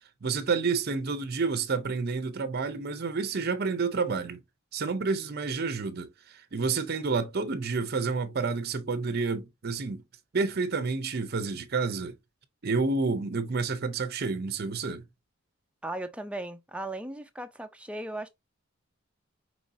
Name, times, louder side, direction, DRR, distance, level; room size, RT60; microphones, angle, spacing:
voice 1, 0.2-4.4 4.7-10.0 10.3-12.2 12.6-15.0, right 4 dB, 50° right, 0.6 m, -29 dB
voice 2, 15.8-18.3, right 1 dB, 5° right, 0.4 m, -37 dB
5.2 x 3.0 x 2.6 m
head